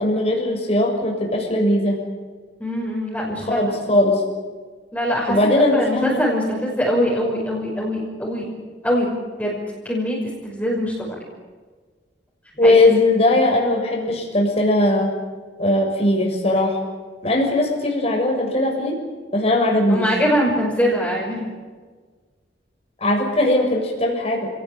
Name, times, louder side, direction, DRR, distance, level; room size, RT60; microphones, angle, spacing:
voice 1, 0.0-2.0 3.3-4.2 5.3-6.2 12.6-15.1 15.6-16.8 17.2-19.0 19.3-20.1 23.0-24.5, left 1 dB, 35° left, 1 dB, 6.6 m, -19 dB
voice 2, 2.6-3.7 4.9-5.4 5.7-8.5 8.8-9.1 9.4-9.5 9.8-10.2 10.4-11.1 12.6-12.8 19.9-21.5, equal, 10° left, -5 dB, 6.1 m, -22 dB
30.0 x 18.5 x 9.2 m, 1.5 s
head